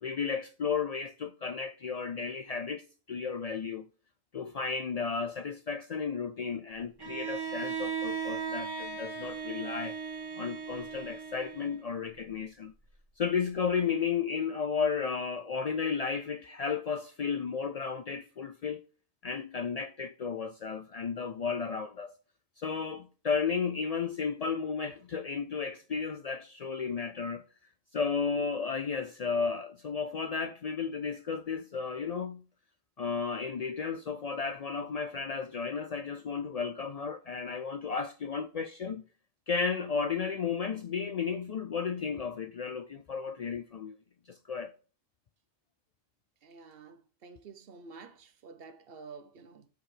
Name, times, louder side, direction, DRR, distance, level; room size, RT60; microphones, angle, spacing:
voice 1, 0.0-3.9 4.3-9.9 10.4-12.7 13.2-18.8 19.2-22.1 22.6-27.4 27.9-32.4 33.0-39.0 39.5-44.0 44.3-44.7, left 5 dB, 55° left, 0.4 m, -33 dB
Bowed string instrument, 7.0-12.0, right 6 dB, 25° right, 1.4 m, -37 dB
voice 2, 46.4-49.7, right 4 dB, 70° right, 1.0 m, -50 dB
7.8 x 4.5 x 3.3 m
omnidirectional pair, 1.0 m